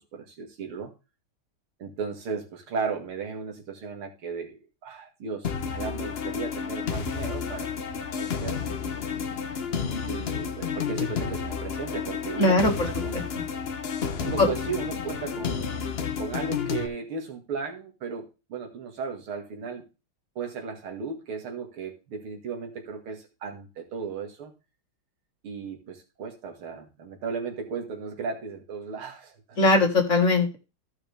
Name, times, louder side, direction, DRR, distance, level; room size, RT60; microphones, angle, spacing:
voice 1, 0.1-0.9 1.8-7.7 8.0-9.0 10.1-13.3 14.2-15.7 16.2-19.9 20.4-24.5 25.4-29.9, right 5 dB, 90° right, 3 dB, 2.7 m, -35 dB
sound 1, 5.4-16.9, left 6 dB, 65° left, 0.6 m, -31 dB
voice 2, 12.4-12.9 13.1-13.4 14.4-14.5 29.6-30.6, left 2 dB, 40° left, 2 dB, 1.9 m, -21 dB
14.5 x 5.6 x 3.4 m, 0.29 s
omnidirectional pair, 2.3 m